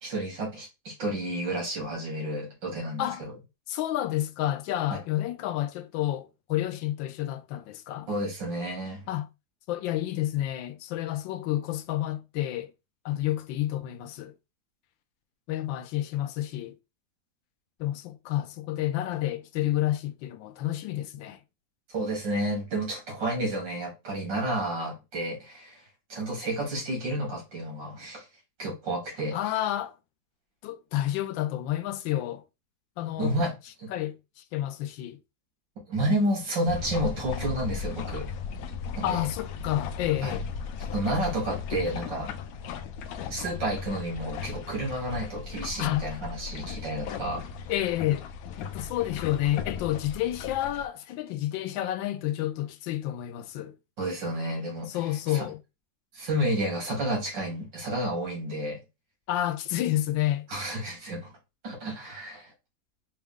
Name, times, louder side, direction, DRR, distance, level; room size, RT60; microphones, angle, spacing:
voice 1, 0.0-3.3 8.1-9.0 21.9-25.8 26.1-28.3 28.6-29.4 33.2-33.5 33.8-33.9 35.9-38.3 39.0-39.3 40.2-40.4 40.9-42.3 43.3-47.4 54.0-55.0 55.3-55.5 56.1-58.8 60.5-61.3 61.6-62.5, right 1 dB, 75° right, 2.7 m, -31 dB
voice 2, 3.7-8.1 9.1-9.3 9.7-12.7 13.0-14.3 15.5-16.8 17.8-21.4 29.3-30.0 30.6-32.4 33.0-33.4 33.9-35.2 39.0-40.4 45.8-46.1 46.7-46.8 47.7-48.3 48.6-53.8 54.9-55.6 59.3-60.5, left 13 dB, 90° left, 1.3 m, -30 dB
sound 1, 36.7-50.9, left 6 dB, 70° left, 0.8 m, -37 dB
5.1 x 2.3 x 3.6 m
omnidirectional pair, 2.0 m